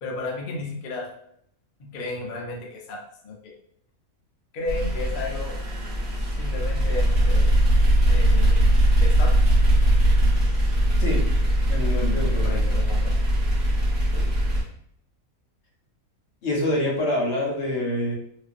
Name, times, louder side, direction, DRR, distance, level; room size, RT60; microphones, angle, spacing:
voice 1, 0.0-1.1 1.8-3.5 4.5-5.5 6.1-7.5 8.1-8.7 9.0-9.5 11.9-13.1, left 3 dB, 80° left, -1 dB, 0.4 m, -34 dB
sound 1, 4.7-14.6, equal, 45° right, 0.9 m, -20 dB
voice 2, 11.6-12.7 14.1-14.2 16.4-18.1, left 1 dB, 60° left, -1 dB, 0.9 m, -26 dB
2.4 x 2.4 x 2.4 m, 0.69 s
omnidirectional pair, 1.5 m